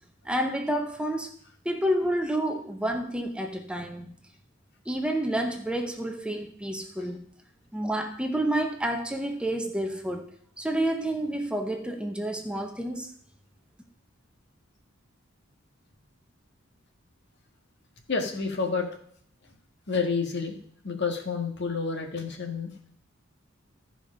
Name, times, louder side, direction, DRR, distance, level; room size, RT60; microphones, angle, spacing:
voice 1, 0.2-1.3 1.6-4.1 4.9-7.2 7.7-10.3 10.6-13.1, right 1 dB, 5° right, 0.8 m, -29 dB
voice 2, 18.1-18.9 19.9-20.6 20.8-22.7, left 4 dB, 60° left, 1.6 m, -29 dB
13.5 x 5.1 x 5.2 m
head